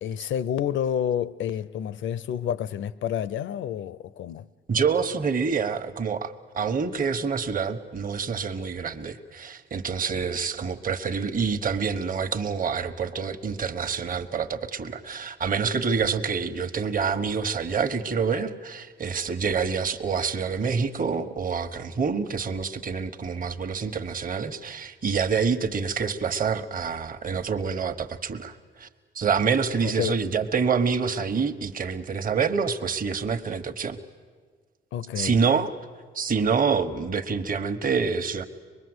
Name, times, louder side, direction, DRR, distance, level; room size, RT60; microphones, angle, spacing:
voice 1, 0.0-4.4 29.8-30.2 34.9-35.4, left 9 dB, 75° left, 0.7 m, -29 dB
voice 2, 4.7-28.9 29.1-34.0 35.2-35.7 36.1-38.4, right 5 dB, 45° right, 1.3 m, -27 dB
24.5 x 21.5 x 8.0 m
cardioid pair, 90°, 20 cm